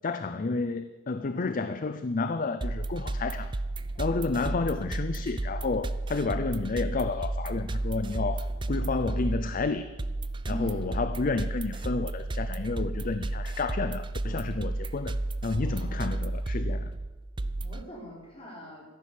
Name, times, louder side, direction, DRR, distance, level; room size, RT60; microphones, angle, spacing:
voice 1, 0.0-3.5 4.0-9.9 10.5-15.2 15.4-16.9, left 3 dB, 45° left, 12 dB, 0.5 m, -31 dB
voice 2, 1.2-1.7 3.9-4.2 10.5-10.9 15.6-16.0 17.6-18.8, left 1 dB, 30° left, -4 dB, 4.5 m, -42 dB
sound 1, 2.6-17.8, right 2 dB, 25° right, 0.5 m, -32 dB
13.5 x 10.5 x 6.9 m, 1.2 s
head